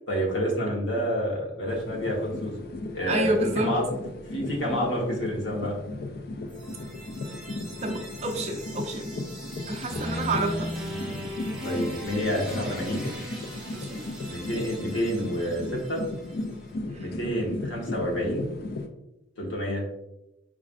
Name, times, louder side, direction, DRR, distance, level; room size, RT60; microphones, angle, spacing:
voice 1, 0.1-3.9 4.3-5.7 10.3-10.5 11.6-13.1 14.3-16.0 17.0-18.5 19.4-19.8, equal, 90° left, -3 dB, 1.1 m, -29 dB
sound 1, 1.7-18.9, left 2 dB, 55° left, 0.4 m, -36 dB
voice 2, 3.1-3.7 7.8-9.2 9.7-10.7 13.7-14.0 16.9-17.1, right 2 dB, 35° right, 3 dB, 0.5 m, -29 dB
sound 2, 6.5-16.4, equal, 5° right, 0.7 m, -38 dB
5.0 x 2.4 x 2.4 m, 0.89 s
head